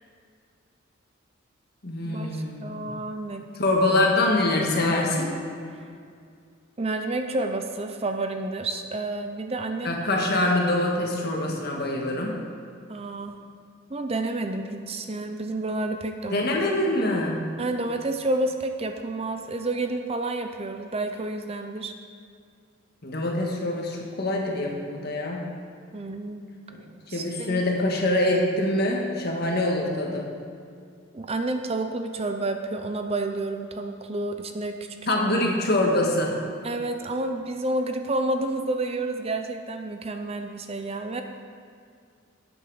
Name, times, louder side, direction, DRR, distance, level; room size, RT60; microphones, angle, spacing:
voice 1, 1.8-2.9 3.6-5.3 9.8-12.4 16.3-17.4 23.0-25.5 27.1-30.3 35.1-36.4, left 1 dB, 50° left, 0 dB, 1.7 m, -24 dB
voice 2, 2.6-3.5 6.8-10.0 12.9-13.3 13.9-16.4 17.6-21.9 25.9-26.4 27.1-27.6 31.1-34.8 36.6-41.2, right 2 dB, 30° right, 6 dB, 0.5 m, -29 dB
13.0 x 8.8 x 4.9 m, 2.3 s
head